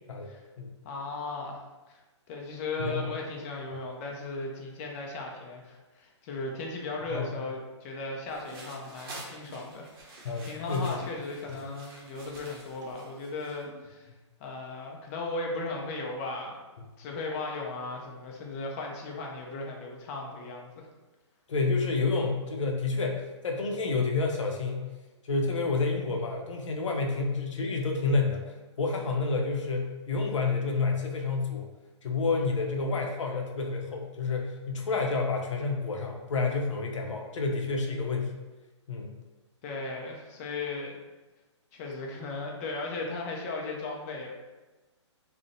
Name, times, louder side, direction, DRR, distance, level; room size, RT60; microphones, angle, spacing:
voice 1, 0.1-0.7 2.8-3.1 7.1-7.3 10.2-11.0 11.5-11.6 21.5-24.9 25.2-31.7 32.0-38.4 38.9-39.1, left 4 dB, 80° left, 2 dB, 0.5 m, -29 dB
voice 2, 0.8-1.6 1.9-2.0 2.3-14.1 14.4-16.6 17.0-20.8 39.6-41.0 41.7-44.3, left 3 dB, 30° left, 0 dB, 0.4 m, -36 dB
sound 1, 8.3-13.6, right 2 dB, 50° right, 0.6 m, -49 dB
sound 2, 8.5-8.9 9.5-9.9 10.2-10.3 10.8-11.5 12.2-12.9 13.4-13.9, equal, 90° right, 0.7 m, -54 dB
2.5 x 2.0 x 2.5 m, 1.2 s
hypercardioid pair, 140°, 15 cm